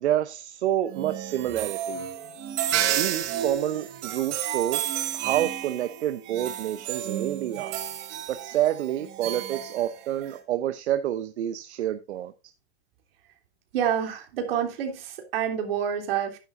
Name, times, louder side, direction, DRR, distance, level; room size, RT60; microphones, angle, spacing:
voice 1, 0.0-2.1 3.0-4.9 5.1-7.8 8.3-12.3, right 12 dB, 80° right, 0.9 m, -28 dB
sound 1, 0.9-10.4, right 11 dB, 35° right, 1.7 m, -31 dB
voice 2, 13.7-16.4, right 8 dB, 60° right, 3.2 m, -28 dB
11.0 x 10.0 x 2.6 m
supercardioid pair, 160°, 33 cm